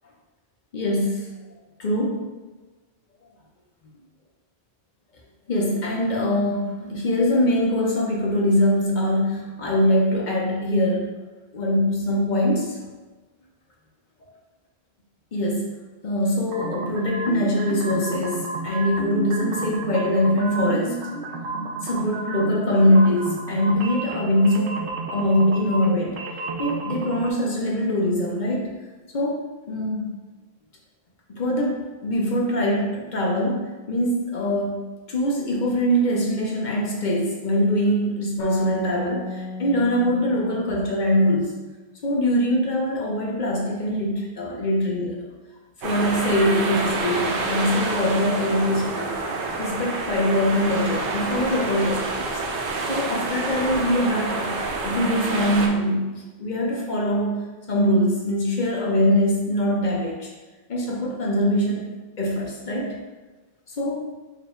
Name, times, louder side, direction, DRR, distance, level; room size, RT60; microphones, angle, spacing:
voice 1, 0.7-1.3 1.8-2.2 5.5-11.2 11.5-12.8 15.3-15.7 16.0-21.0 21.8-24.8 25.1-26.2 26.6-28.7 29.1-29.4 29.7-30.1 31.3-41.5 42.0-45.2 45.8-49.1 49.6-52.2 52.9-54.6 54.8-60.3 60.7-61.9 62.2-63.0 63.8-64.0, equal, 50° left, -2 dB, 0.8 m, -23 dB
sound 1, 16.5-27.3, right 3 dB, 85° right, 0.8 m, -32 dB
sound 2, 38.4-41.9, left 3 dB, 90° left, 0.9 m, -35 dB
sound 3, 45.8-55.7, right 3 dB, 60° right, 0.7 m, -28 dB
4.7 x 2.2 x 3.6 m, 1.2 s
omnidirectional pair, 1.1 m